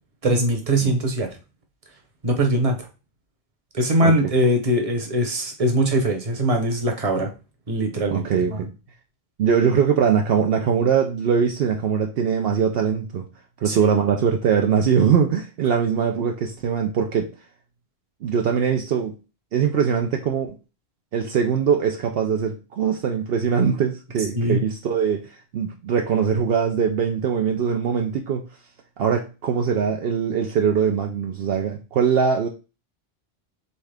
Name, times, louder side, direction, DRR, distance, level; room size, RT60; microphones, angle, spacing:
voice 1, 0.2-1.4 2.2-2.8 3.7-7.3 7.7-8.6 13.7-13.8 24.3-24.6, right 1 dB, 35° right, 4 dB, 1.0 m, -21 dB
voice 2, 8.1-8.7 9.4-13.3 13.6-17.3 18.2-19.1 19.5-20.6 21.1-28.5 29.0-32.5, right 7 dB, 70° right, 3 dB, 0.8 m, -22 dB
4.2 x 3.6 x 3.3 m, 0.31 s
omnidirectional pair, 1.1 m